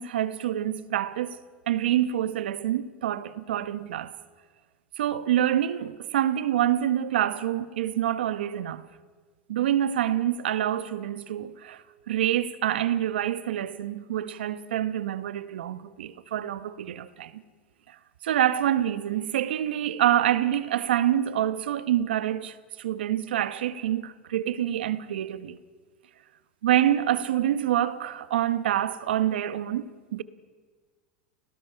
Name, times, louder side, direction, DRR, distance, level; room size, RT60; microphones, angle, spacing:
voice 1, 0.0-1.4 1.7-4.1 5.0-8.8 9.5-17.4 17.9-18.0 18.2-25.6 26.6-30.2, right 11 dB, 80° right, 1.0 m, -26 dB
30.0 x 18.0 x 5.7 m
hypercardioid pair, 105°, 5 cm